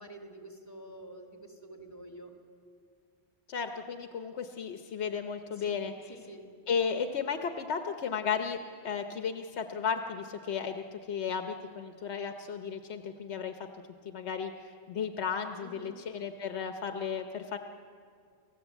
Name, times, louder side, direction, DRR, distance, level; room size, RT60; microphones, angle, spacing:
voice 1, 0.0-2.3 5.5-6.4 15.6-16.0, right 1 dB, 45° left, 2 dB, 2.7 m, -48 dB
voice 2, 3.5-6.1 6.7-8.6 8.8-13.5 14.0-17.6, left 6 dB, 90° left, 6 dB, 1.2 m, -34 dB
29.5 x 14.0 x 8.1 m, 2.2 s
omnidirectional pair, 1.1 m